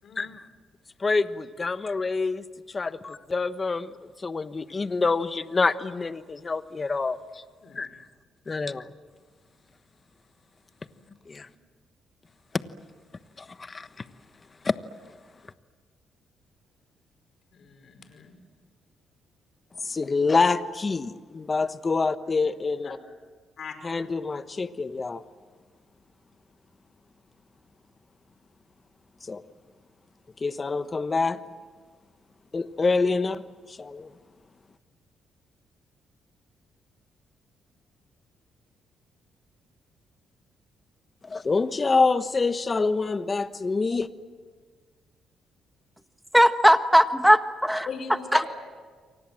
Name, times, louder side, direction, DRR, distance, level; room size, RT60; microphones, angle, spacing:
voice 1, 0.0-0.3 7.6-7.9 10.9-11.0 11.4-11.5 17.5-18.4 22.8-22.9 23.6-23.8 47.9-48.4, left 6 dB, 55° left, 5.2 m, -39 dB
voice 2, 1.0-2.4 2.7-3.9 4.2-7.4 7.7-8.0 8.5-8.9 11.3-11.5 13.4-13.9 14.6-14.8 19.8-22.9 23.8-25.2 29.2-29.4 30.4-31.4 32.5-33.4 33.7-34.1 41.2-44.1, left 4 dB, 30° left, 1.2 m, -26 dB
voice 3, 46.3-47.9 48.3-48.5, equal, ahead, 1.3 m, -18 dB
29.0 x 24.0 x 7.7 m
cardioid pair, 90°, 0 cm